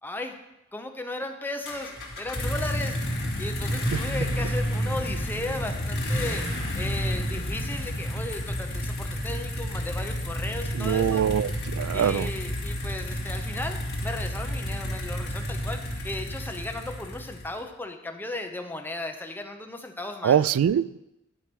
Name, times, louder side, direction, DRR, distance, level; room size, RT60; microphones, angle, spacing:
voice 1, 0.0-0.4 0.7-3.0 3.4-11.2 11.9-20.4, left 2 dB, 10° left, 0.8 m, -36 dB
sound 1, 1.6-17.6, equal, 50° left, 2.4 m, -30 dB
sound 2, 5.3-16.2, equal, 55° right, 2.8 m, -49 dB
voice 2, 10.7-12.3 20.2-21.0, right 9 dB, 85° right, 0.3 m, -23 dB
11.5 x 4.6 x 6.2 m
head